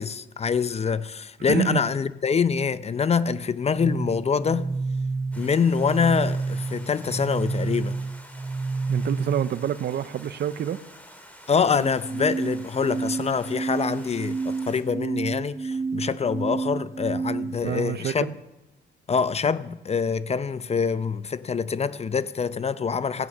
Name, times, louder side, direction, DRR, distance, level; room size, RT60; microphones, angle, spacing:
voice 1, 0.0-4.7 5.4-8.0 11.5-18.3 19.1-23.3, left 6 dB, 30° left, 0.6 m, -25 dB
voice 2, 1.5-1.8 8.9-10.8 17.6-18.3, right 10 dB, 55° right, 0.6 m, -27 dB
sound 1, 3.7-9.7 11.7-17.7, right 4 dB, 15° right, 0.4 m, -30 dB
Stream, 5.3-14.8, equal, 5° left, 3.0 m, -48 dB
15.5 x 8.6 x 7.2 m
cardioid pair, 90°, 20 cm